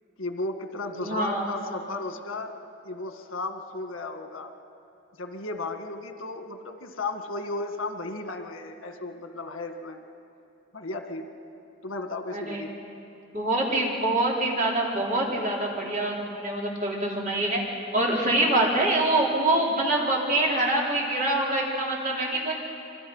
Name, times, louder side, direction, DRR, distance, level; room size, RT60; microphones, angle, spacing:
voice 1, 0.2-2.5 2.8-4.5 5.2-10.0 10.7-11.3 11.8-12.7, left 2 dB, 85° left, 5 dB, 1.8 m, -34 dB
voice 2, 0.9-1.5 12.3-12.6 13.3-17.6 17.9-22.5, right 1 dB, 40° right, -3 dB, 4.4 m, -25 dB
26.5 x 24.5 x 5.7 m, 2.7 s
head